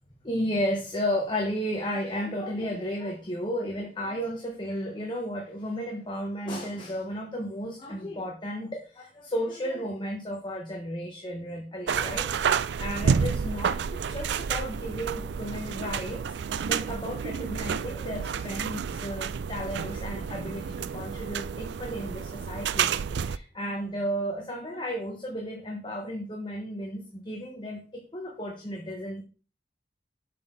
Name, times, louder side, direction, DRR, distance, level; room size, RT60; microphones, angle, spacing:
voice 1, 0.2-22.9 23.2-29.2, equal, 25° left, 0 dB, 1.2 m, -33 dB
sound 1, 11.9-23.4, right 6 dB, 75° right, 0.4 m, -30 dB
8.2 x 6.3 x 3.9 m, 0.38 s
head